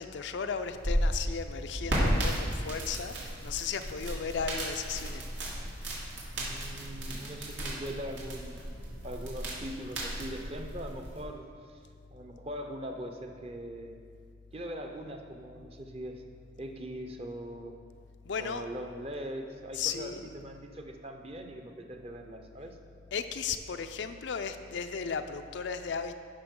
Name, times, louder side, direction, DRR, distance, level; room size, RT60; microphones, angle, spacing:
voice 1, 0.0-6.0 18.2-18.6 19.7-20.3 23.1-26.1, left 6 dB, 70° left, 8 dB, 0.4 m, -36 dB
sound 1, 0.6-11.2, equal, 85° right, 2.4 m, -34 dB
voice 2, 6.3-8.6 9.0-11.8 12.1-14.0 14.5-16.2 16.6-17.7 18.4-22.8, equal, 30° right, 4 dB, 0.7 m, -41 dB
13.0 x 5.6 x 3.7 m, 2.2 s
head